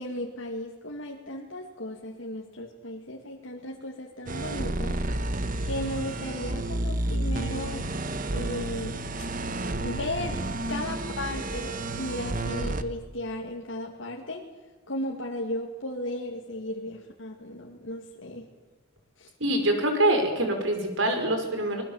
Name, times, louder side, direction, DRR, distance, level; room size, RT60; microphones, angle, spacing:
voice 1, 0.0-5.0 5.6-7.9 8.3-9.0 9.8-10.4 10.7-14.4 14.9-18.5 19.2-19.3, left 1 dB, 80° left, 0 dB, 2.4 m, -35 dB
sound 1, 4.3-12.8, right 1 dB, 45° right, 1.2 m, -31 dB
voice 2, 19.4-21.8, right 1 dB, 75° right, 5 dB, 5.2 m, -25 dB
25.0 x 20.5 x 7.3 m, 1.2 s
head